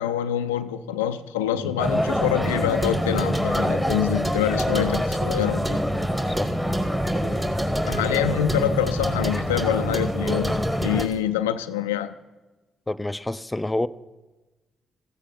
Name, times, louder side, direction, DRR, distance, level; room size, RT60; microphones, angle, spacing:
voice 1, 0.0-5.8 7.9-12.1, left 11 dB, 85° left, 10 dB, 0.4 m, -26 dB
sound 1, 1.8-11.0, equal, 5° right, 1.6 m, -25 dB
sound 2, 2.7-11.2, right 1 dB, 30° right, 2.4 m, -36 dB
Dog, 4.2-10.1, right 2 dB, 50° right, 3.8 m, -39 dB
voice 2, 12.9-13.9, left 2 dB, 15° left, 12 dB, 0.5 m, -28 dB
14.5 x 8.3 x 7.5 m, 1.2 s
hypercardioid pair, 40°, 0 cm